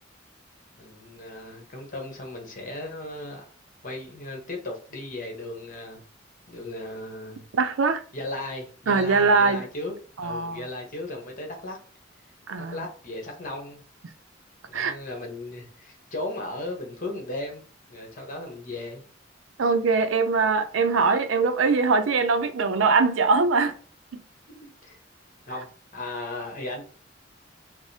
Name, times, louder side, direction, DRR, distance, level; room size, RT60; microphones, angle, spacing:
voice 1, 0.8-3.5 3.8-6.0 6.5-7.4 8.1-9.9 10.2-11.8 12.6-13.8 14.7-17.6 17.9-19.0 24.5-25.0 25.5-26.8, left 2 dB, 45° left, 1.0 m, -36 dB
voice 2, 7.5-8.0 8.9-9.6 10.2-10.6 12.5-12.8 14.7-14.9 19.6-23.7 24.1-24.2, right 4 dB, 80° right, 0.5 m, -22 dB
4.7 x 2.1 x 2.7 m
head